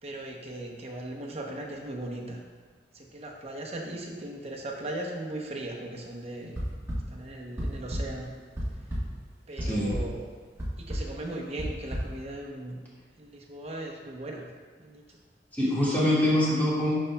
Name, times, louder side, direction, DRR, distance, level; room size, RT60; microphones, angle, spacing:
voice 1, 0.0-2.4 2.9-6.6 7.1-8.3 9.5-10.3 10.8-12.8 13.2-14.5 14.8-15.2, right 1 dB, 35° right, -1 dB, 0.8 m, -38 dB
sound 1, 6.6-7.0 7.6-8.0 8.4-9.0 9.6-10.0 10.6-11.0 11.6-12.0, equal, 15° right, 1.5 m, -31 dB
voice 2, 9.6-9.9 15.5-16.9, left 1 dB, 10° left, -9 dB, 1.8 m, -24 dB
11.5 x 4.0 x 2.3 m, 1.5 s
head